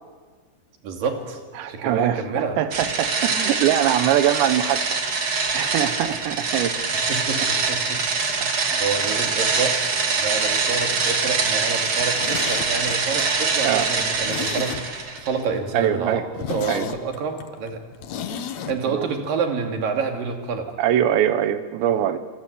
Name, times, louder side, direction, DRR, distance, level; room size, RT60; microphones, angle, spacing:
voice 1, 0.8-1.4 1.7-2.6 7.1-8.5 8.8-16.2 16.5-17.8 18.7-20.7, right 5 dB, 55° right, 3 dB, 4.0 m, -28 dB
voice 2, 1.6-6.9 8.4-8.9 13.6-13.9 15.7-16.3 16.7-16.9 18.9-19.1 20.8-22.2, right 11 dB, 75° right, 11 dB, 3.3 m, -23 dB
sound 1, 2.7-15.3, right 4 dB, 40° right, 2.2 m, -24 dB
Zipper (clothing), 11.9-15.2 15.5-15.6 16.0-16.1 16.3-18.8 19.0-19.1, left 8 dB, 85° left, 1.5 m, -33 dB
26.5 x 26.0 x 8.3 m, 1.5 s
omnidirectional pair, 5.2 m